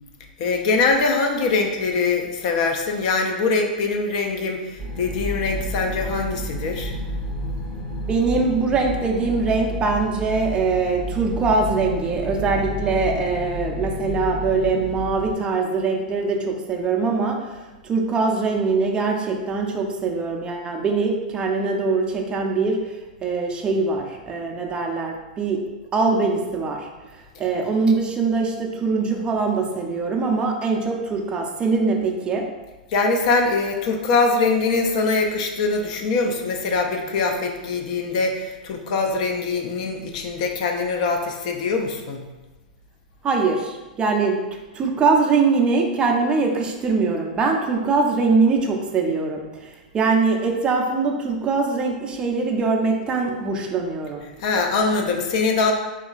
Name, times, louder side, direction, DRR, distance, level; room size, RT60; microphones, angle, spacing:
voice 1, 0.4-6.9 32.9-42.2 54.4-55.7, left 4 dB, 55° left, 3 dB, 0.3 m, -23 dB
sound 1, 4.8-15.3, equal, 15° left, 0.7 m, -31 dB
voice 2, 8.1-17.4 17.8-22.8 23.2-25.6 25.9-26.9 27.4-32.4 43.2-44.4 44.7-54.2, right 4 dB, 20° right, 1 dB, 0.4 m, -22 dB
2.8 x 2.4 x 2.3 m, 1.1 s
hypercardioid pair, 105°, 5 cm